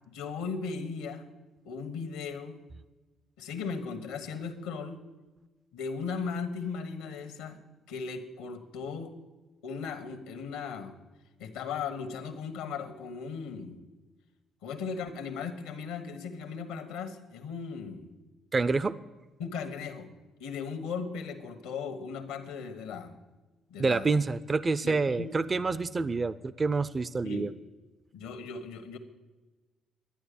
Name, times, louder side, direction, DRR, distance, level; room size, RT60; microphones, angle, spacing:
voice 1, 0.1-1.3 1.6-2.6 3.4-5.0 5.7-7.6 7.9-9.1 9.6-10.9 11.4-13.8 14.6-18.1 19.4-20.1 20.4-23.2 23.7-24.1 24.8-25.3 27.2-27.5 28.1-29.0, left 5 dB, 90° left, 9 dB, 1.3 m, -37 dB
voice 2, 18.5-18.9 23.8-27.5, right 4 dB, 35° right, 16 dB, 0.5 m, -27 dB
12.0 x 9.3 x 6.9 m, 1.2 s
supercardioid pair, 65°, 0 cm